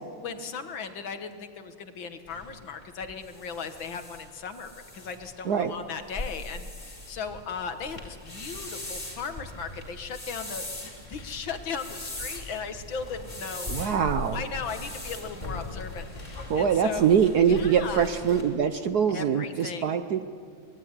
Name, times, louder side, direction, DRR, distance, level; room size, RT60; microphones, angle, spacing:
voice 1, 0.1-14.0 14.3-17.1 17.4-18.1 19.1-20.0, left 5 dB, 65° left, 8 dB, 2.2 m, -37 dB
sound 1, 2.3-18.4, left 2 dB, 20° left, 4.3 m, -40 dB
voice 2, 13.7-14.4 16.5-20.3, right 7 dB, 60° right, 10 dB, 1.1 m, -23 dB
25.0 x 20.5 x 9.8 m, 2.2 s
omnidirectional pair, 2.3 m